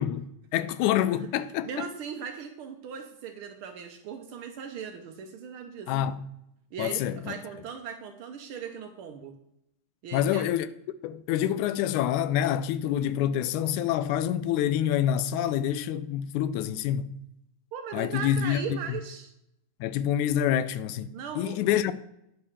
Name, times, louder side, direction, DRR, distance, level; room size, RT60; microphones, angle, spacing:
voice 1, 0.0-1.9 5.9-6.2 6.8-7.3 10.1-10.7 11.0-17.1 17.9-18.6 19.8-21.9, left 10 dB, 80° left, 2.0 m, -27 dB
voice 2, 1.6-5.9 6.7-9.3 10.0-10.5 17.7-19.3 21.1-21.9, right 7 dB, 85° right, 1.2 m, -38 dB
9.6 x 5.7 x 6.7 m
omnidirectional pair, 3.5 m